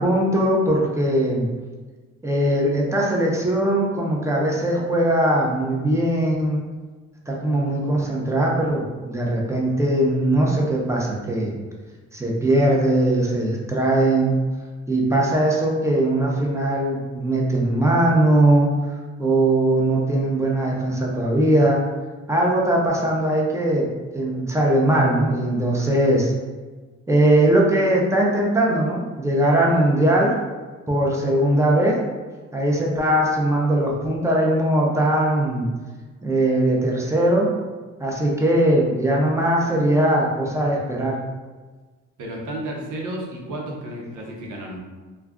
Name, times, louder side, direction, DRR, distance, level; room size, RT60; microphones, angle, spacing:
voice 1, 0.0-1.4 2.2-6.6 7.3-11.6 12.1-14.4 14.9-18.7 19.2-21.8 22.3-23.9 24.1-26.3 27.1-30.3 30.9-32.0 32.5-35.7 36.2-37.5 38.0-41.2, right 1 dB, 10° right, -2 dB, 0.6 m, -20 dB
voice 2, 42.2-44.8, right 1 dB, 85° right, -2 dB, 0.8 m, -32 dB
2.3 x 2.3 x 3.6 m, 1.3 s
cardioid pair, 90°, 30 cm